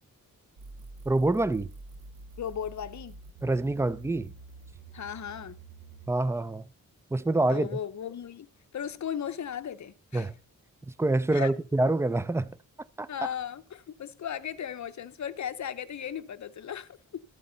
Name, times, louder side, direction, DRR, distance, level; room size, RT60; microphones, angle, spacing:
sound 1, 0.6-6.1, right 3 dB, 75° right, 1.3 m, -47 dB
voice 1, 1.1-1.7 3.4-4.3 6.1-6.6 7.1-7.7 10.1-10.3 11.0-12.5 13.0-13.1, right 2 dB, 10° right, 0.4 m, -26 dB
voice 2, 2.4-3.1 4.9-5.6 7.5-8.5 8.7-10.3 11.3-11.5 13.1-17.2, left 9 dB, 55° left, 0.7 m, -36 dB
12.5 x 8.5 x 3.9 m
wide cardioid pair, 145°, 34 cm